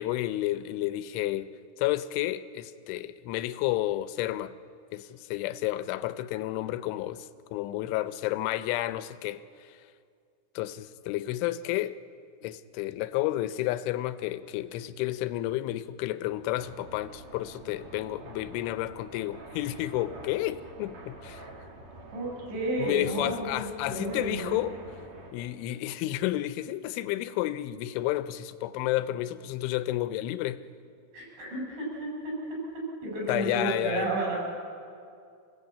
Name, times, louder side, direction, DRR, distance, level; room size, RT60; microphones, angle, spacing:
voice 1, 0.0-1.5 1.8-4.5 4.9-9.8 10.6-12.0 12.4-21.5 22.8-24.8 25.3-30.6 33.3-34.2, left 15 dB, 85° left, 13 dB, 3.1 m, -31 dB
sound 1, 16.6-25.3, right 1 dB, 45° right, 3.2 m, -47 dB
voice 2, 22.1-24.6 31.1-32.6 33.0-34.4, right 1 dB, 75° right, -3 dB, 8.6 m, -32 dB
27.0 x 17.0 x 8.4 m, 2.4 s
omnidirectional pair, 5.5 m